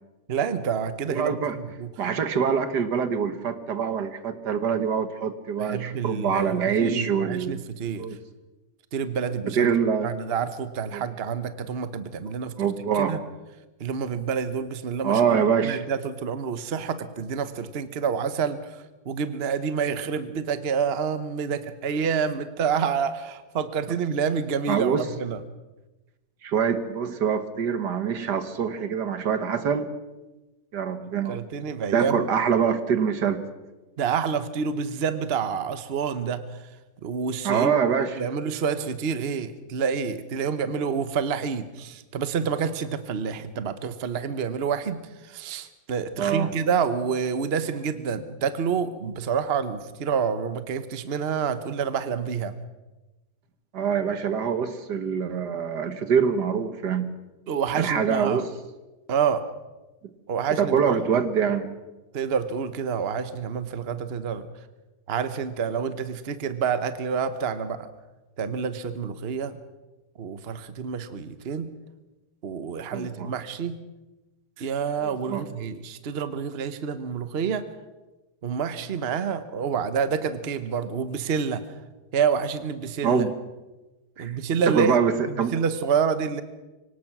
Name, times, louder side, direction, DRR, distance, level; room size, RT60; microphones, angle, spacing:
voice 1, 0.3-1.4 1.8-1.9 5.6-8.1 8.9-9.7 10.0-12.5 13.0-13.2 13.8-25.4 31.3-32.2 34.0-36.6 37.0-37.7 38.2-52.5 57.5-58.4 59.1-59.4 60.3-61.2 62.1-64.5 65.1-67.9 68.4-69.6 70.2-71.7 72.4-73.8 74.6-77.7 78.4-81.6 82.1-83.3 84.2-85.0 85.3-86.4, right 6 dB, 40° right, 12 dB, 1.1 m, -28 dB
voice 2, 1.1-1.6 2.0-7.6 8.0-8.2 9.5-10.1 10.9-11.0 12.6-13.2 15.0-15.9 24.7-25.1 26.4-29.9 30.7-31.4 31.9-33.4 37.4-38.2 46.2-46.5 53.7-57.1 57.7-58.5 60.6-61.7 72.9-73.3 75.0-75.4 83.0-83.3 84.2-84.3 84.7-85.5, right 7 dB, 80° right, 11 dB, 1.9 m, -25 dB
24.5 x 18.0 x 6.1 m, 1.1 s
omnidirectional pair, 1.8 m